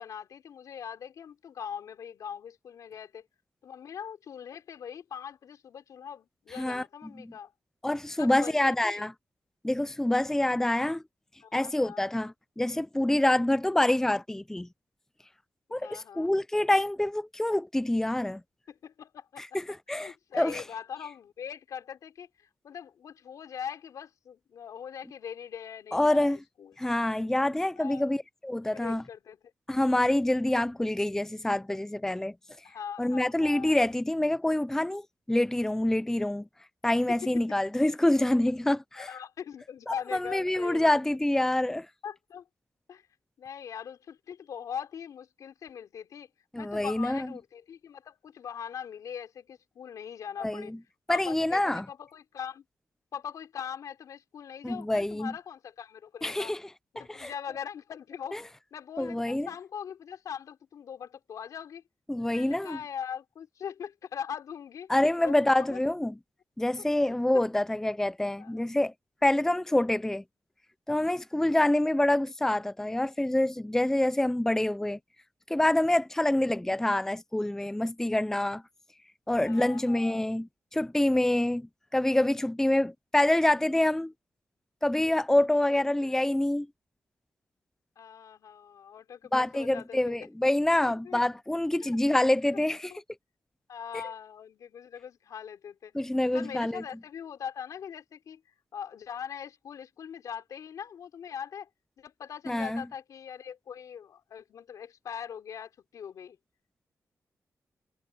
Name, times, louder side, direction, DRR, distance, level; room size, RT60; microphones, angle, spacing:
voice 1, 0.0-3.3 3.6-7.5 8.2-9.1 11.4-12.1 15.7-16.3 18.7-19.4 19.9-26.7 27.8-28.1 28.6-29.4 32.6-33.8 37.2-37.4 39.0-41.0 42.0-42.5 42.9-43.0 43.4-46.3 46.6-50.8 51.1-52.6 53.1-56.5 56.9-58.4 58.7-61.8 62.3-64.9 65.2-65.8 67.3-67.4 68.4-68.6 71.4-71.7 76.3-76.6 79.4-80.2 85.7-86.1 88.0-90.3 91.0-91.2 91.8-92.0 92.9-93.0 93.7-95.9 96.3-98.4 98.7-101.7 102.0-106.4, left 8 dB, 85° left, 4.2 m, -41 dB
voice 2, 7.8-9.1 9.6-11.0 11.5-14.7 15.7-18.4 19.4-20.6 25.9-26.4 26.8-29.0 29.7-32.3 33.0-36.5 36.8-39.1 39.9-41.9 46.5-47.3 50.4-50.8 51.1-51.9 54.6-55.3 56.2-56.6 57.0-57.3 58.3-58.4 59.0-59.5 62.1-62.8 64.9-66.2 66.6-68.9 69.2-70.2 70.9-75.0 75.5-78.6 79.3-84.1 84.8-86.7 89.3-92.9 95.9-96.8 102.5-102.8, left 1 dB, 10° left, 0.5 m, -26 dB
cardioid pair, 80°, 6 cm